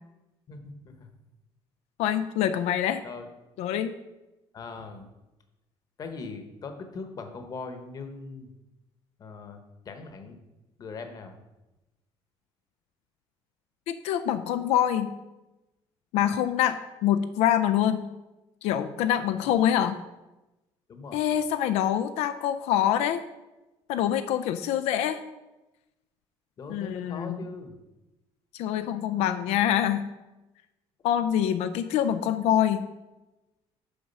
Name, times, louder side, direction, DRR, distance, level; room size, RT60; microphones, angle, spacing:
voice 1, 0.5-1.1 3.0-3.3 4.5-5.1 6.0-8.5 9.2-9.6 9.8-10.4 10.8-11.4 19.3-19.6 20.9-21.2 26.6-27.8, left 4 dB, 35° left, 6 dB, 1.0 m, -40 dB
voice 2, 2.0-3.0 3.6-3.9 13.9-15.1 16.1-18.0 18.6-20.0 21.1-23.2 23.9-25.2 26.7-27.4 28.5-30.1 31.0-32.8, left 10 dB, 85° left, 10 dB, 0.4 m, -25 dB
7.0 x 4.8 x 5.4 m, 1.0 s
cardioid pair, 140°, 11 cm